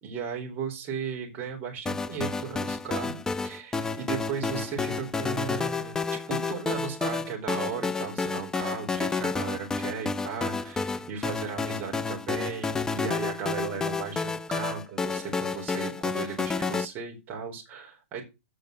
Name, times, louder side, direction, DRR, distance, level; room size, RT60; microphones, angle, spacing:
voice 1, 0.0-18.2, right 6 dB, 25° right, 1 dB, 4.3 m, -36 dB
sound 1, 1.9-16.9, left 4 dB, 10° left, 0.5 m, -30 dB
8.7 x 6.4 x 6.7 m, 0.25 s
hypercardioid pair, 145°, 7 cm